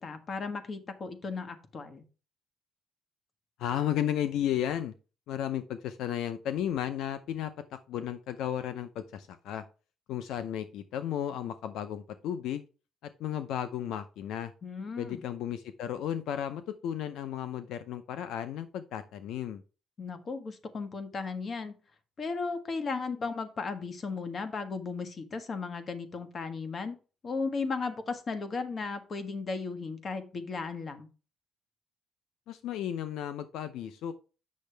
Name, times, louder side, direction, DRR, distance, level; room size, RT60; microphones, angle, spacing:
voice 1, 0.0-2.0 14.6-15.2 20.0-21.7 22.2-26.9 27.2-31.1, left 4 dB, 40° left, 9 dB, 1.4 m, -35 dB
voice 2, 3.6-4.9 5.3-7.5 7.9-9.6 10.1-12.6 13.0-14.5 15.0-19.6 32.5-34.1, left 10 dB, 80° left, 11 dB, 0.6 m, -34 dB
8.6 x 6.4 x 3.3 m, 0.34 s
cardioid pair, 110°, 0 cm